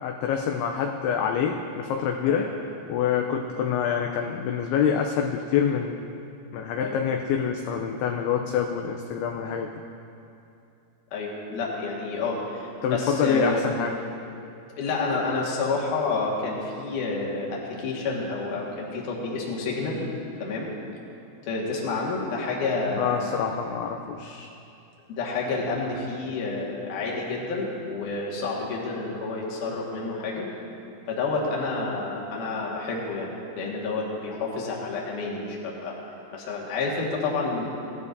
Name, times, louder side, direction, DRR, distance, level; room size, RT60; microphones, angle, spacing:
voice 1, 0.0-2.5 2.9-6.2 6.5-9.7 12.8-13.9 23.0-24.5, left 7 dB, 80° left, 3 dB, 2.3 m, -26 dB
voice 2, 11.1-13.6 14.0-14.1 14.8-20.1 20.4-20.7 21.5-23.4 25.1-30.5 31.1-36.0 36.3-37.7, left 3 dB, 55° left, -4 dB, 2.7 m, -29 dB
17.0 x 12.5 x 2.6 m, 2.7 s
omnidirectional pair, 5.1 m